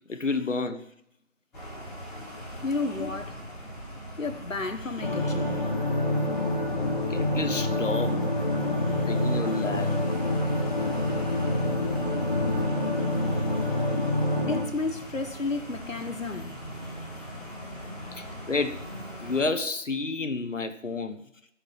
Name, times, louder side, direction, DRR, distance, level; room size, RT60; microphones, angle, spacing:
voice 1, 0.1-0.8 3.0-3.1 7.1-8.2 9.1-10.0 18.1-18.8 19.2-21.2, left 3 dB, 70° left, 1.4 m, -30 dB
sound 1, 1.5-19.5, left 1 dB, ahead, 2.3 m, -39 dB
voice 2, 2.6-3.4 4.2-5.7 8.7-9.4 11.0-11.1 13.0-14.0 14.5-16.6, left 3 dB, 85° left, 1.4 m, -33 dB
sound 2, 5.0-14.6, left 1 dB, 35° left, 2.0 m, -27 dB
15.0 x 6.6 x 7.4 m
figure-of-eight pair, 165°, 38 cm